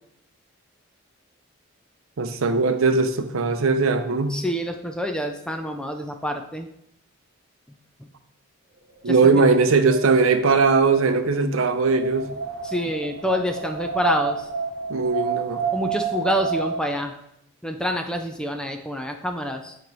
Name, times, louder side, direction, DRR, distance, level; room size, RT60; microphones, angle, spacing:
voice 1, 2.2-4.4 9.0-12.3 14.9-15.6, right 4 dB, 75° right, 8 dB, 0.6 m, -19 dB
voice 2, 4.3-6.7 9.1-9.4 12.6-14.5 15.7-17.1 17.6-19.8, equal, 5° left, 5 dB, 0.4 m, -27 dB
Wind, 9.1-17.0, right 4 dB, 45° right, 0.9 m, -30 dB
9.0 x 3.0 x 4.7 m, 0.77 s
head